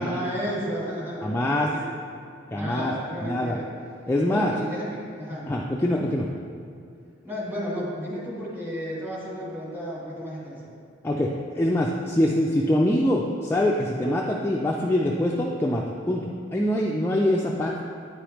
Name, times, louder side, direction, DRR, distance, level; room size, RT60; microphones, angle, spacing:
voice 1, 0.0-1.9 2.5-3.6 4.2-5.5 7.2-10.6, equal, 10° right, -7 dB, 1.6 m, -32 dB
voice 2, 1.2-1.7 2.5-2.9 3.2-3.6 4.1-4.5 5.5-6.3 11.0-17.8, left 1 dB, 10° left, -2 dB, 0.3 m, -24 dB
9.2 x 4.9 x 3.0 m, 2.4 s
head